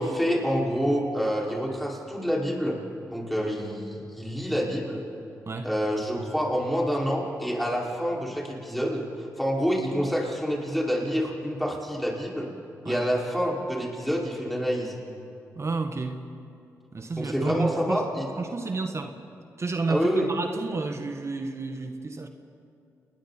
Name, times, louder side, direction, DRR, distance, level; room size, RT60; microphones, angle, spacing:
voice 1, 0.0-2.8 3.1-5.0 5.6-12.5 12.8-15.0 17.2-18.2 19.9-20.2, equal, ahead, -3 dB, 5.8 m, -27 dB
voice 2, 15.5-16.3 16.9-18.0 18.4-19.2 19.6-22.3, right 3 dB, 45° right, 6 dB, 1.5 m, -31 dB
29.5 x 21.0 x 4.5 m, 2.6 s
supercardioid pair, 45°, 7 cm